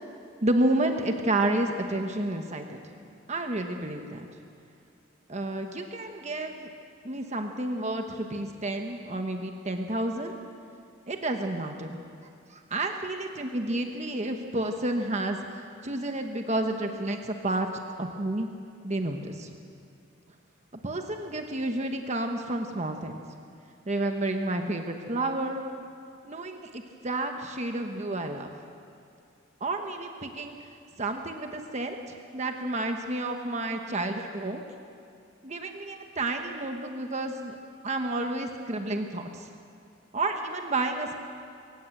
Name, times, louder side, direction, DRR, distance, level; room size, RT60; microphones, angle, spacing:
voice 1, 0.4-2.8 3.3-4.2 5.3-6.7 7.0-10.3 11.1-12.0 12.5-17.7 18.0-18.5 18.8-19.5 20.8-23.2 23.9-25.6 26.2-28.5 29.6-30.7 31.0-32.0 32.3-34.6 35.4-37.6 37.8-39.5 40.1-41.1, right 2 dB, 35° right, 4 dB, 1.2 m, -30 dB
22.0 x 18.0 x 7.8 m, 2.5 s
head